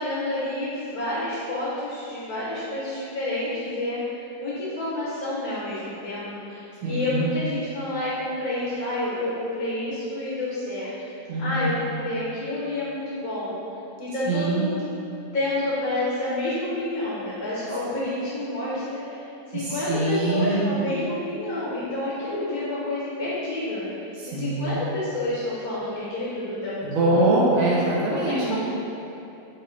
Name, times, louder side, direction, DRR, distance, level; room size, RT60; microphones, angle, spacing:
voice 1, 0.0-10.9 11.4-13.6 14.0-14.9 15.3-23.9 24.3-27.3 28.1-28.6, left 1 dB, 60° left, -9 dB, 1.3 m, -29 dB
voice 2, 6.8-7.3 11.3-11.7 14.2-14.7 19.5-20.7 24.2-24.8 26.8-28.6, right 2 dB, 55° right, -7 dB, 1.2 m, -23 dB
3.7 x 2.8 x 4.3 m, 2.9 s
omnidirectional pair, 1.8 m